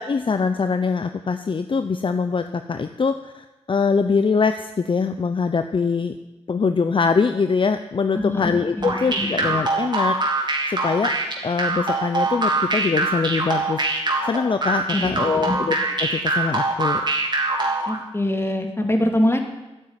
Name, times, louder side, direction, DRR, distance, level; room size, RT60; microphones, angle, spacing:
voice 1, 0.0-6.1 6.5-11.2 11.4-13.8 14.2-15.8 16.0-17.0, left 5 dB, 50° left, 9 dB, 0.7 m, -23 dB
voice 2, 8.1-9.4 14.9-15.2 15.4-15.6 17.9-19.4, left 1 dB, 20° left, 4 dB, 2.5 m, -23 dB
sound 1, 8.8-18.0, right 2 dB, 40° right, 2.9 m, -23 dB
12.0 x 9.4 x 9.7 m, 1.0 s
wide cardioid pair, 70°, 11 cm